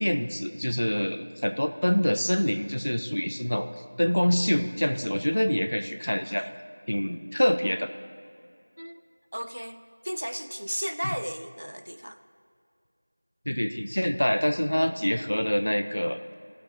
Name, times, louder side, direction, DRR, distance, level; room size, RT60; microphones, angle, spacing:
voice 1, 0.0-3.7 4.0-6.5 6.9-7.9 11.0-11.1 13.5-16.2, equal, 35° left, 8 dB, 0.4 m, -26 dB
voice 2, 9.3-12.2, equal, 55° right, 10 dB, 0.5 m, -34 dB
17.5 x 7.9 x 2.6 m, 2.4 s
figure-of-eight pair, 180°, 0 cm